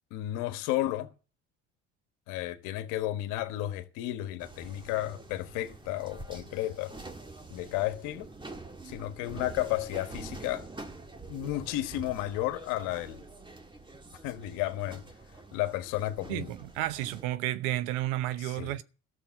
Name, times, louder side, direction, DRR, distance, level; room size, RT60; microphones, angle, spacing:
voice 1, 0.1-1.1 2.3-7.0 7.5-8.3 8.8-10.7 11.3-13.2 14.2-15.0 15.5-16.5 18.4-18.7, left 15 dB, 85° left, 1.2 m, -33 dB
sound 1, 4.4-17.2, right 3 dB, 15° right, 1.7 m, -46 dB
voice 2, 16.3-18.8, right 14 dB, 85° right, 0.8 m, -32 dB
13.5 x 6.7 x 7.9 m
supercardioid pair, 80°, 30 cm